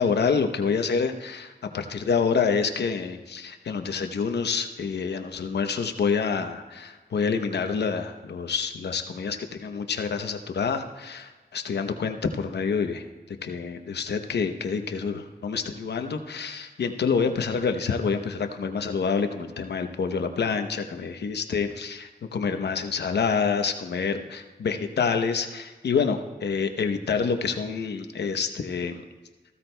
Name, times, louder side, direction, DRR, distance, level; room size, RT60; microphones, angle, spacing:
voice 1, 0.0-29.0, left 5 dB, 90° left, 7 dB, 0.8 m, -27 dB
15.0 x 13.5 x 2.2 m, 1.3 s
wide cardioid pair, 70°, 17 cm